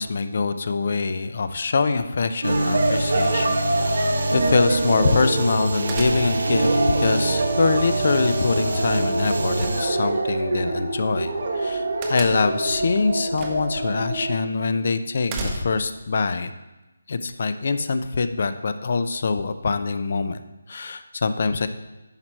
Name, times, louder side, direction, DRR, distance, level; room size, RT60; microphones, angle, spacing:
voice 1, 0.0-16.5 17.1-20.4 20.7-21.7, left 4 dB, 50° left, 11 dB, 0.5 m, -24 dB
sound 1, 2.4-9.8, right 1 dB, 75° right, 1.5 m, -26 dB
sound 2, 2.5-14.4, right 2 dB, 55° right, 1.3 m, -26 dB
sound 3, 3.2-3.8 5.9-6.6 9.6-10.3 12.0-12.6 13.3-13.8 14.1-14.2 15.3-16.0, right 3 dB, 20° right, 0.8 m, -34 dB
10.5 x 4.5 x 4.4 m, 1.1 s
figure-of-eight pair, 165°, 0 cm